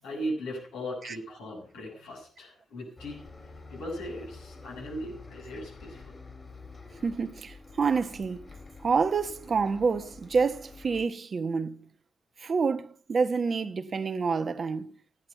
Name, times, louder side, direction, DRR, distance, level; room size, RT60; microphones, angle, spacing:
voice 1, 0.0-6.1, equal, 85° left, 7.6 m, -38 dB
Bus, 3.0-11.1, left 3 dB, 40° left, 4.1 m, -48 dB
voice 2, 7.0-8.5 8.8-11.9 12.4-14.9, right 5 dB, 50° right, 1.1 m, -28 dB
15.0 x 11.0 x 5.7 m
hypercardioid pair, 45°, 0 cm